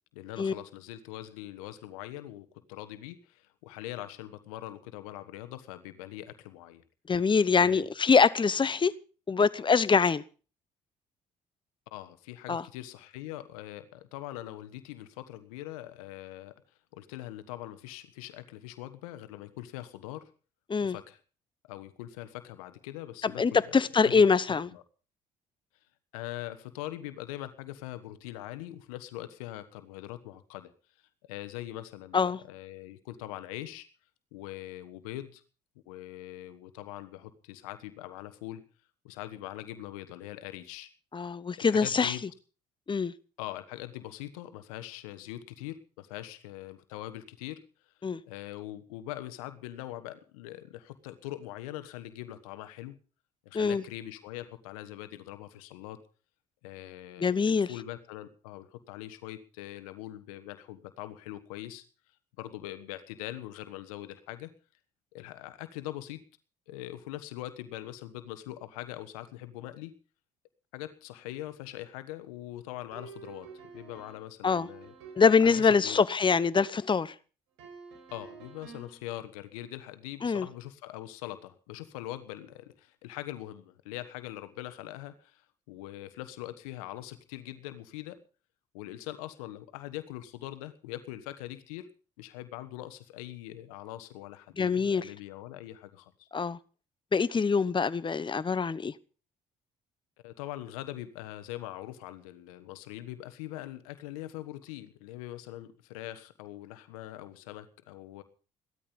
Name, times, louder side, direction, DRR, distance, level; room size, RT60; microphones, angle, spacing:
voice 1, 0.1-6.8 7.6-7.9 11.9-16.5 16.9-20.3 20.8-21.2 21.7-24.3 24.7-24.8 26.1-30.7 31.2-33.9 34.3-35.4 35.8-38.6 39.0-40.9 41.6-42.2 43.4-47.6 47.9-48.0 48.3-53.0 53.4-56.0 56.6-61.8 62.4-64.5 65.1-66.2 66.7-69.9 70.7-73.5 73.7-74.9 75.4-76.0 78.1-88.2 88.7-91.9 92.2-96.3 100.2-108.2, left 14 dB, 85° left, 1.4 m, -42 dB
voice 2, 7.1-8.9 9.3-10.2 12.5-12.6 20.7-21.0 23.2-24.7 32.1-32.4 41.1-42.2 42.9-43.1 48.0-48.2 53.5-53.8 57.2-57.7 74.4-74.7 75.2-77.1 80.2-80.5 94.6-95.1 96.3-96.6 97.1-98.9, left 5 dB, 30° left, 1.0 m, -24 dB
sound 1, 72.9-75.9 77.6-79.0, right 6 dB, 85° right, 5.2 m, -49 dB
16.0 x 13.0 x 5.4 m
hypercardioid pair, 55°, 18 cm